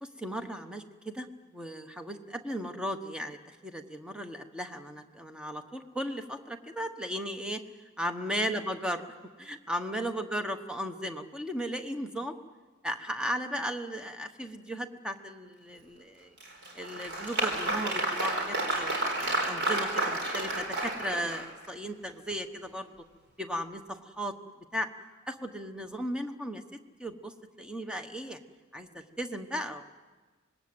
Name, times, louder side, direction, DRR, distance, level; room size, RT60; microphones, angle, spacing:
voice 1, 0.0-1.3 1.5-7.6 8.0-9.0 9.4-12.4 12.8-16.4 16.7-22.9 23.4-24.3 24.7-24.9 25.3-26.6 27.0-28.4 28.7-29.8, equal, 5° right, 6 dB, 1.2 m, -36 dB
Applause, 16.4-21.7, right 2 dB, 60° right, 4.3 m, -31 dB
26.0 x 21.0 x 7.9 m, 1.3 s
head